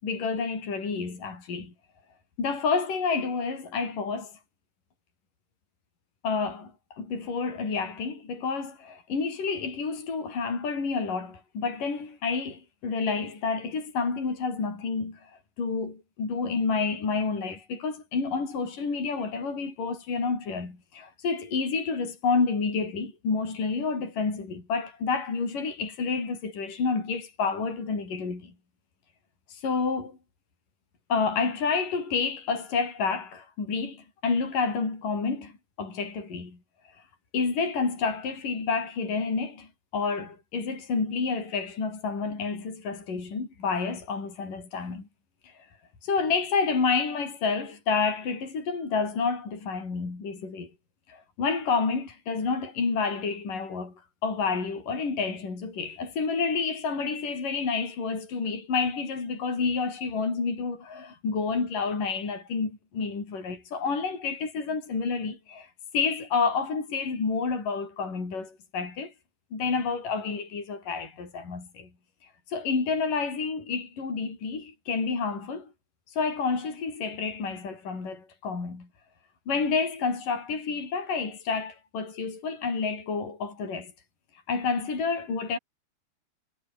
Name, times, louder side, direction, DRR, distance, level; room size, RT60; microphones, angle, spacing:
voice 1, 0.0-1.7 2.4-4.3 6.2-15.3 15.6-28.5 29.5-30.2 31.1-35.5 35.8-36.6 37.3-45.1 45.4-45.5 46.0-50.7 51.1-53.9 54.2-69.1 69.5-71.9 72.5-75.7 76.1-78.9 79.5-83.9 84.5-85.6, left 4 dB, 55° left, 8.2 m, -29 dB
omnidirectional pair, 4.5 m